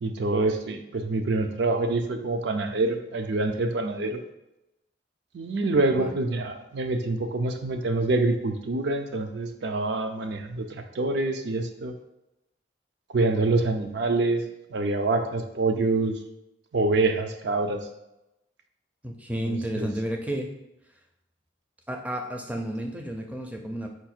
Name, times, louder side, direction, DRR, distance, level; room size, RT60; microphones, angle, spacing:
voice 1, 0.0-4.2 5.3-11.9 13.1-14.4 14.7-16.2 16.7-17.8 19.5-19.9, right 2 dB, 65° right, 6 dB, 0.5 m, -26 dB
voice 2, 19.0-20.5 21.9-23.9, right 1 dB, 10° right, 2 dB, 0.4 m, -31 dB
4.7 x 2.4 x 4.3 m, 0.90 s
head